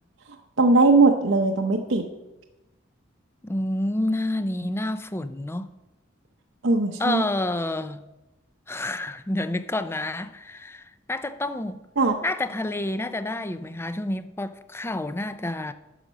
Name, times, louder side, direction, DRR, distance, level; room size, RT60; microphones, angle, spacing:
voice 1, 0.6-2.1 6.6-7.2 12.0-12.1, right 3 dB, 65° right, 0.8 m, -19 dB
voice 2, 3.4-5.7 7.0-8.0 8.7-11.8 12.2-15.7, left 1 dB, 10° left, 0.4 m, -29 dB
9.9 x 6.6 x 6.2 m
head